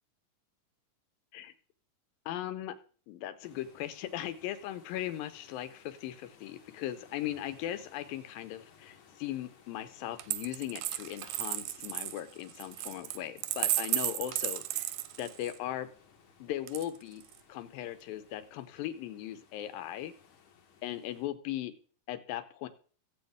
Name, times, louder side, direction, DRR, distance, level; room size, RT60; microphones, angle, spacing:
voice 1, 2.3-2.8 3.1-14.9 15.2-15.9 16.4-17.2 17.5-20.1 20.8-21.8 22.1-22.7, left 12 dB, 85° left, 10 dB, 2.6 m, -38 dB
sound 1, 3.4-21.3, left 7 dB, 65° left, 2.2 m, -61 dB
Coin (dropping), 10.2-15.6 16.7-17.4, right 15 dB, 80° right, 1.9 m, -34 dB
16.0 x 8.0 x 3.5 m, 0.42 s
omnidirectional pair, 4.0 m